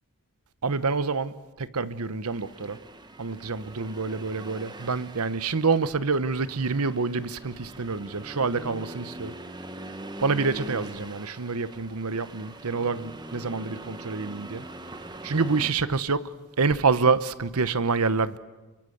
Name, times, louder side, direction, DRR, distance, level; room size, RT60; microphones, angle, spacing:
voice 1, 0.6-2.8 3.2-9.3 10.2-14.7 15.2-16.3 16.6-18.4, right 4 dB, 85° right, 1.0 m, -27 dB
Accelerating revving vroom, 2.2-15.7, right 1 dB, 20° right, 1.1 m, -42 dB
27.0 x 22.5 x 8.0 m
head